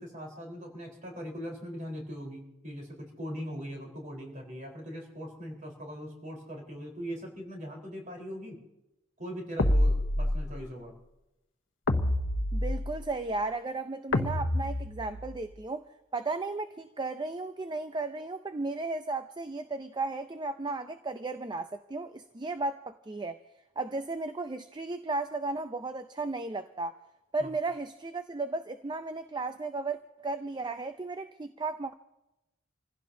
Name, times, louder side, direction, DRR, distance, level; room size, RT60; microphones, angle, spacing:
voice 1, 0.0-8.6 9.2-11.0 27.4-27.5, equal, 40° right, 4.2 m, -40 dB
sound 1, 9.6-10.7 11.9-13.1 14.1-15.4, left 1 dB, 75° left, 1.0 m, -28 dB
voice 2, 12.5-23.4 23.8-27.0 27.3-31.9, right 3 dB, 25° right, 0.5 m, -35 dB
27.5 x 16.0 x 2.8 m
head